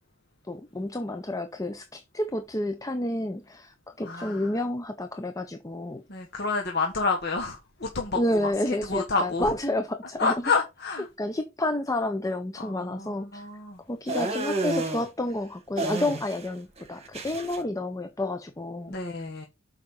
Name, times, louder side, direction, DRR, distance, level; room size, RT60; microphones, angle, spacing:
voice 1, 0.5-6.0 8.1-10.3 11.2-13.5 13.9-19.0, left 1 dB, 15° left, 0.6 m, -30 dB
voice 2, 4.0-4.5 6.1-9.5 10.2-11.1 12.6-13.8 18.9-19.5, left 4 dB, 55° left, 1.2 m, -29 dB
sound 1, 14.1-15.0 15.8-16.5 16.8-17.6, right 2 dB, 30° right, 1.6 m, -30 dB
6.7 x 5.0 x 5.5 m
head